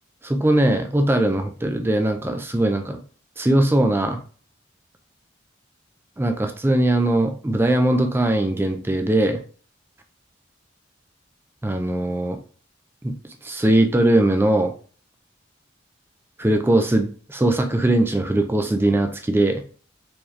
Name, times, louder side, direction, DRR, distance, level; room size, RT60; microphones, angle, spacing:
voice 1, 0.2-3.0 3.4-4.2 6.2-9.4 11.6-12.4 13.0-13.2 13.4-14.7 16.4-19.6, right 1 dB, 10° right, 5 dB, 0.4 m, -20 dB
4.5 x 2.9 x 3.2 m, 0.41 s
head